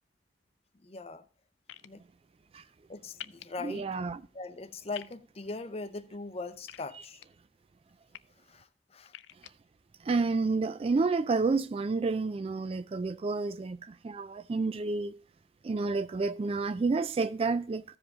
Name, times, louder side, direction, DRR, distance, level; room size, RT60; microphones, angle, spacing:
voice 1, 0.8-1.2 1.8-2.0 2.9-3.9 4.3-7.2 8.5-9.1, left 3 dB, 35° left, 0.6 m, -40 dB
sound 1, 1.7-1.9 3.2-3.4 4.9-5.1 6.7-7.3 7.9-8.2 9.1-9.5, left 12 dB, 85° left, 0.4 m, -45 dB
voice 2, 3.6-4.2 10.0-15.1 15.6-18.0, right 3 dB, 30° right, 0.3 m, -30 dB
14.5 x 5.0 x 3.5 m
head